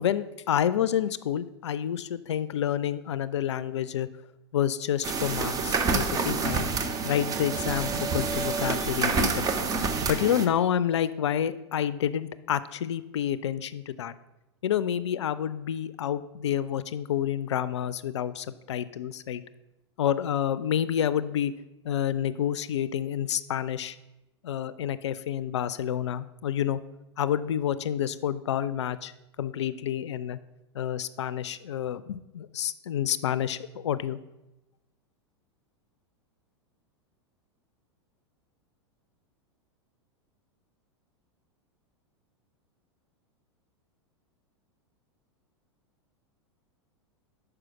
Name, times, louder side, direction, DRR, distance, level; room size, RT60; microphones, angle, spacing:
voice 1, 0.0-4.1 4.5-6.7 7.0-9.5 10.1-14.1 14.6-19.4 20.0-21.5 21.8-24.0 24.4-26.8 27.2-29.1 29.4-30.4 30.7-34.2, left 10 dB, 75° left, 16 dB, 0.4 m, -29 dB
sound 1, 5.0-10.5, right 4 dB, 25° right, 0.7 m, -28 dB
6.2 x 4.8 x 5.8 m, 0.96 s
hypercardioid pair, 95°, 15 cm